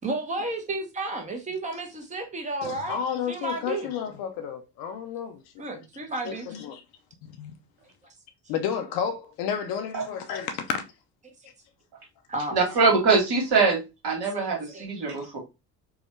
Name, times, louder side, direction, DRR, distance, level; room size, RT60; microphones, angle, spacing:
voice 1, 0.0-3.0 3.3-3.9 5.6-6.5 8.5-8.6 11.2-11.3 12.3-12.6 14.3-14.9, right 2 dB, 15° right, 0.9 m, -32 dB
voice 2, 2.6-5.4 5.7-5.8 6.2-6.8 7.2-7.5 8.5-10.8, left 7 dB, 50° left, 0.7 m, -31 dB
voice 3, 12.5-15.4, right 4 dB, 55° right, 1.8 m, -23 dB
4.5 x 2.2 x 3.2 m
figure-of-eight pair, 50°, 47 cm